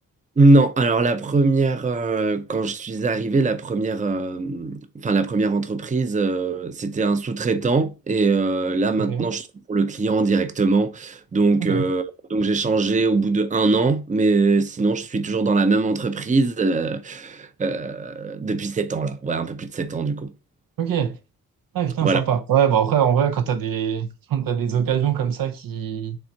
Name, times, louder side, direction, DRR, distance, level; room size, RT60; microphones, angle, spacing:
voice 1, 0.4-12.0 12.3-20.3 22.0-22.2, right 3 dB, 20° right, 0.6 m, -21 dB
voice 2, 9.0-9.3 11.6-11.9 20.8-21.2 21.7-26.2, right 9 dB, 70° right, 0.8 m, -22 dB
5.5 x 3.5 x 2.8 m
cardioid pair, 70°, 36 cm